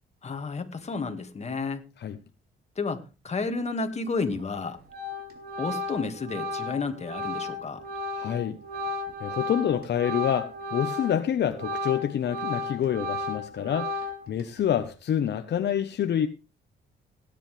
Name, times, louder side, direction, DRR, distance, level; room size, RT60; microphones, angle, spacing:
voice 1, 0.2-1.9 2.8-4.8 5.6-7.8, left 4 dB, 35° left, 2.0 m, -31 dB
Organ, 4.3-4.6 4.9-11.2 11.5-14.4, left 2 dB, 55° right, 3.8 m, -34 dB
voice 2, 8.2-8.6 9.2-14.0 14.3-16.3, left 9 dB, 60° left, 1.1 m, -27 dB
17.0 x 10.0 x 3.4 m
cardioid pair, 90°, 20 cm